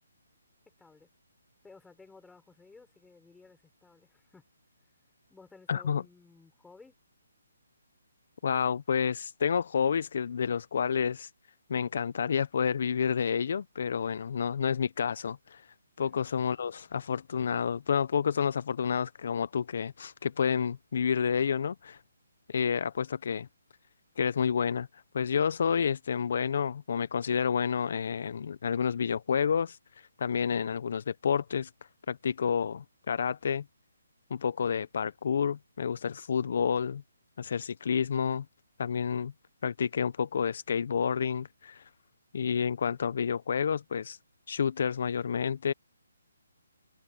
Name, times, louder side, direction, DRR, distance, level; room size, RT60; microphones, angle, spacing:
voice 1, 0.7-1.1 1.6-4.4 5.3-7.0 16.0-16.2, left 4 dB, 5° left, 6.6 m, -56 dB
voice 2, 5.7-6.0 8.4-11.3 11.7-15.7 16.0-22.0 22.5-23.5 24.2-31.7 32.1-33.6 34.3-37.0 37.4-38.4 38.8-39.3 39.6-41.9 42.3-44.2 44.5-45.7, left 7 dB, 55° left, 0.7 m, -29 dB
hypercardioid pair, 155°, 0 cm